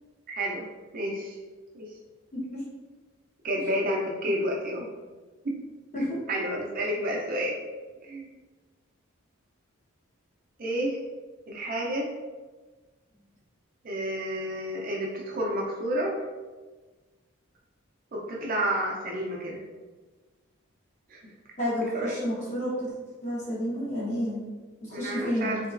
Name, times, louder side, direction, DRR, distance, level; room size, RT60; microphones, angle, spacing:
voice 1, 0.3-0.7 0.9-1.4 1.7-1.9 3.4-4.9 5.4-5.6 6.3-7.6 8.0-8.3 10.6-11.0 11.5-12.1 13.8-16.2 18.1-19.6 21.1-21.2 21.9-22.2 24.9-25.6, equal, 40° right, -2 dB, 0.5 m, -30 dB
voice 2, 21.6-22.9 23.2-24.4 24.8-25.5, equal, 35° left, -8 dB, 1.2 m, -30 dB
3.2 x 2.9 x 2.5 m, 1.3 s
head